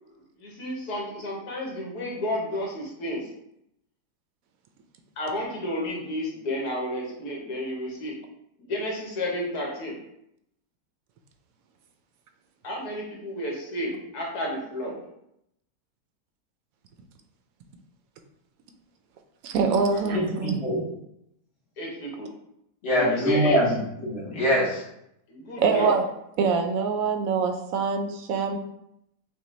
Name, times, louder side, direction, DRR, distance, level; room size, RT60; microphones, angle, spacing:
voice 1, 0.4-3.3 5.2-8.2 8.6-9.9 12.6-15.0 19.9-20.2 21.8-22.3 23.0-23.6 25.3-26.0, left 1 dB, 75° left, -2 dB, 1.6 m, -31 dB
voice 2, 19.4-20.6 25.6-26.0 26.4-28.6, right 5 dB, 70° right, 6 dB, 0.9 m, -24 dB
voice 3, 20.1-20.8 22.8-24.8, equal, 50° left, -4 dB, 1.2 m, -24 dB
6.4 x 2.2 x 3.1 m, 0.78 s
omnidirectional pair, 1.7 m